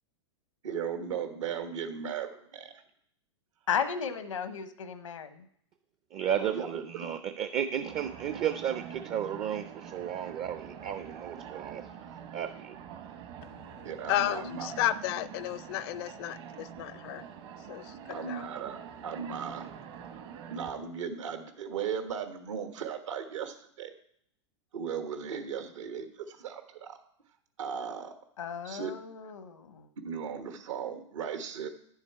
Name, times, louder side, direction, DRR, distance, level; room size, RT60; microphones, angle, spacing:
voice 1, 0.6-2.8 6.4-6.7 13.8-14.8 18.1-19.7 20.5-23.9 24.7-27.0 27.6-28.1 28.6-28.9 30.0-31.7, right 7 dB, 75° right, 1.4 m, -37 dB
voice 2, 3.7-5.4 28.4-29.9, left 7 dB, 85° left, 1.0 m, -34 dB
voice 3, 6.1-11.8 12.3-12.8, right 9 dB, 35° right, 0.5 m, -33 dB
sound 1, 7.9-20.7, right 8 dB, 55° right, 1.4 m, -45 dB
voice 4, 13.4-18.4, left 13 dB, 55° left, 0.5 m, -34 dB
9.7 x 7.2 x 4.5 m
hypercardioid pair, 115°, 16 cm